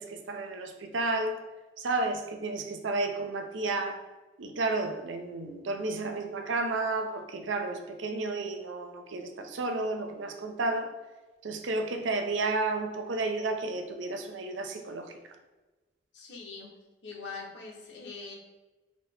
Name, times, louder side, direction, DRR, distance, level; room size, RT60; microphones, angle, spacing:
voice 1, 0.0-1.4 1.8-4.0 4.4-10.9 11.4-15.2, right 2 dB, 80° right, 5 dB, 0.5 m, -32 dB
voice 2, 16.1-16.7 17.0-18.3, left 4 dB, 65° left, 0 dB, 0.8 m, -42 dB
4.0 x 2.8 x 3.3 m, 1.2 s
head